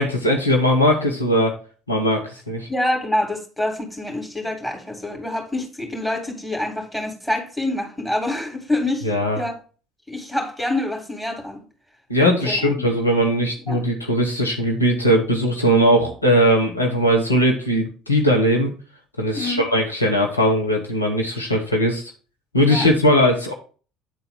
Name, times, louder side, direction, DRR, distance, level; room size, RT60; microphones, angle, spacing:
voice 1, 0.0-1.5 1.9-2.7 9.0-9.4 12.1-18.7 19.2-22.1 22.5-23.5, equal, 90° left, 1.0 m, -19 dB
voice 2, 2.7-9.1 9.4-9.5 10.1-11.6 12.4-12.9 13.7-13.8 19.3-19.7 22.7-22.9, left 1 dB, 5° left, 2.7 m, -26 dB
9.3 x 4.0 x 4.2 m
figure-of-eight pair, 55°, 0 cm